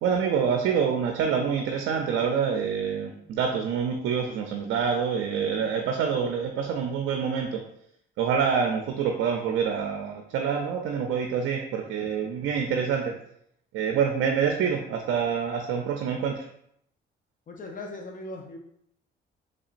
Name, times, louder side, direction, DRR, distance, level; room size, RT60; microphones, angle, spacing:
voice 1, 0.0-7.6 8.2-13.1 13.7-16.4, right 7 dB, 85° right, 3 dB, 0.4 m, -26 dB
voice 2, 17.5-18.6, left 2 dB, 40° left, 2 dB, 0.6 m, -38 dB
3.7 x 3.3 x 2.4 m, 0.72 s
cardioid pair, 90°, 20 cm